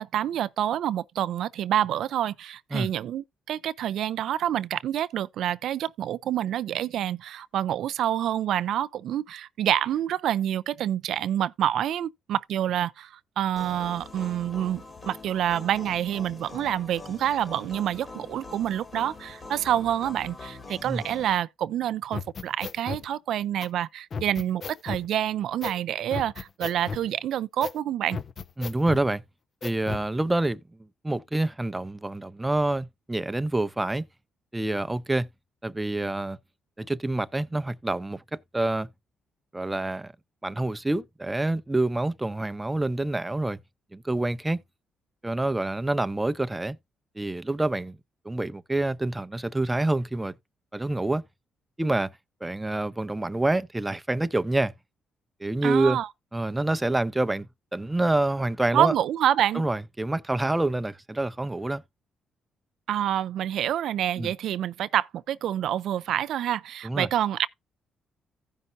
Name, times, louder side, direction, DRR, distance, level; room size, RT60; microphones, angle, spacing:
voice 1, 0.0-28.2 55.6-56.1 58.7-59.6 62.9-67.5, right 11 dB, 75° right, 0.4 m, -27 dB
sound 1, 13.6-21.4, left 3 dB, 30° left, 2.1 m, -43 dB
sound 2, 22.1-23.0 23.6-23.7 24.1-25.1 25.6-25.8 26.1-27.1 27.6-27.8 28.1-29.1 29.6-30.1, left 5 dB, 45° left, 0.6 m, -35 dB
voice 2, 28.6-29.2 29.6-30.6 31.0-34.0 34.5-35.3 35.6-36.4 36.8-38.9 39.5-40.1 40.4-43.6 43.9-44.6 45.2-46.8 47.2-48.0 48.2-50.3 50.7-51.2 51.8-52.1 52.4-54.7 55.4-56.0 56.3-58.9 59.5-61.8 64.2-64.3 66.8-67.1, right 2 dB, 10° right, 0.6 m, -27 dB
15.5 x 5.4 x 2.6 m
cardioid pair, 90°, 0 cm